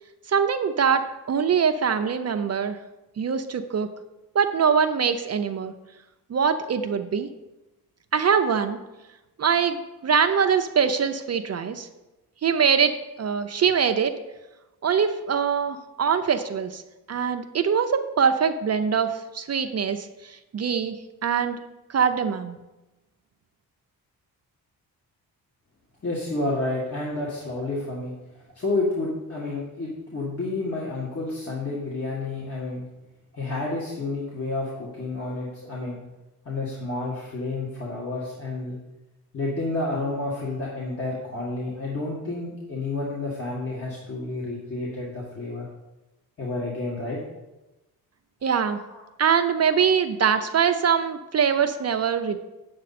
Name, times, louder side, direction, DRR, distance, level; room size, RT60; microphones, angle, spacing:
voice 1, 0.3-2.8 3.2-3.9 4.3-5.7 6.3-7.3 8.1-8.8 9.4-11.9 12.4-14.2 14.8-16.8 17.1-21.0 21.2-21.6 21.9-22.6 48.4-48.8 49.2-52.4, right 7 dB, 45° right, 7 dB, 0.6 m, -23 dB
voice 2, 26.0-28.1 28.5-32.8 33.3-36.0 36.5-38.8 39.3-45.7 46.4-47.2 48.9-49.0 49.7-49.8, left 2 dB, 40° left, -5 dB, 2.0 m, -30 dB
8.6 x 7.6 x 4.2 m, 1.0 s
cardioid pair, 100°, 37 cm